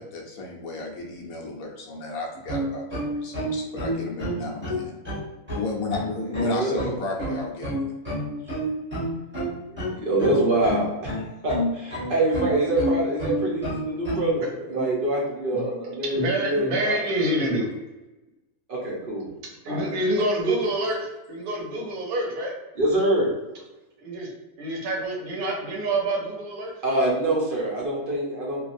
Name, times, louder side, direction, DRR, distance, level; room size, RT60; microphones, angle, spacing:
voice 1, 0.0-4.9 5.5-7.8, left 2 dB, 70° left, 0 dB, 1.0 m, -33 dB
sound 1, 2.4-14.3, equal, 10° right, 0.8 m, -29 dB
voice 2, 6.4-6.8 9.7-11.1 11.4-17.0 18.7-19.3 19.7-19.9 22.8-23.3 26.8-28.6, right 1 dB, 45° right, -3 dB, 0.7 m, -25 dB
voice 3, 14.4-14.9 15.5-15.7 16.1-17.7 19.6-22.5 24.0-24.3 24.6-26.7, right 1 dB, 80° right, -1 dB, 1.3 m, -27 dB
3.3 x 2.3 x 2.5 m, 1.0 s
omnidirectional pair, 1.6 m